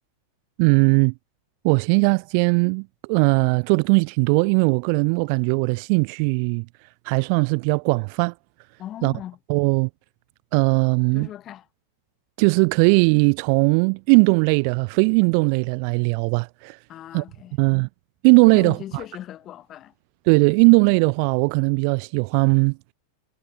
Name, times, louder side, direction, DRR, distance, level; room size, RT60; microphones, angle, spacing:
voice 1, 0.6-1.1 1.6-6.7 7.0-8.3 9.0-9.1 9.5-9.9 10.5-11.3 12.4-16.8 17.1-17.2 17.6-17.9 18.2-18.8 20.3-22.8, right 40 dB or more, 45° right, 0.6 m, -19 dB
voice 2, 8.8-9.4 11.1-11.7 16.9-17.5 18.5-19.9, left 12 dB, 30° left, 6.3 m, -38 dB
figure-of-eight pair, 90°, 0 cm